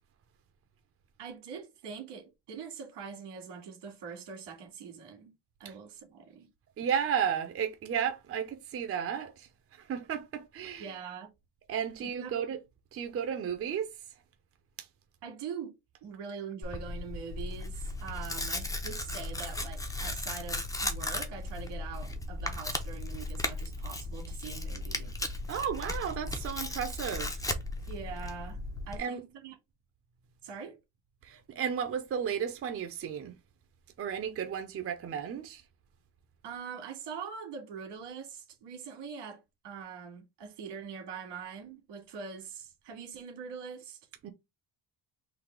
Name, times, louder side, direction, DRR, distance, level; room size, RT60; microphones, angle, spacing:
voice 1, 1.2-5.3 5.6-6.5 10.8-11.3 12.0-12.4 15.2-15.7 16.0-25.1 27.9-29.6 30.4-30.8 36.4-44.0, right 6 dB, 90° right, 2.0 m, -43 dB
voice 2, 6.8-11.0 11.7-12.6 12.9-13.9 14.8-14.9 25.5-27.5 28.9-29.2 31.2-33.3 34.0-35.6 44.2-44.3, right 8 dB, 35° right, 0.6 m, -33 dB
Tearing, 16.6-29.0, left 2 dB, 10° left, 0.6 m, -36 dB
4.0 x 2.7 x 4.4 m
cardioid pair, 165°, 41 cm